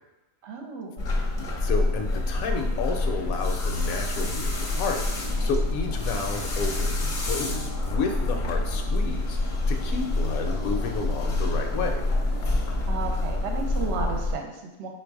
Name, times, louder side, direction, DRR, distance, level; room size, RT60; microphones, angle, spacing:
voice 1, 0.4-1.0 12.9-14.9, right 4 dB, 60° right, 3 dB, 0.9 m, -33 dB
sound 1, 1.0-14.3, left 2 dB, 45° left, 0.7 m, -27 dB
voice 2, 1.4-9.4 9.7-12.0, left 4 dB, 75° left, 4 dB, 1.1 m, -31 dB
sound 2, 4.5-14.1, left 1 dB, 5° right, 0.7 m, -45 dB
4.5 x 2.6 x 4.5 m, 0.98 s
omnidirectional pair, 1.5 m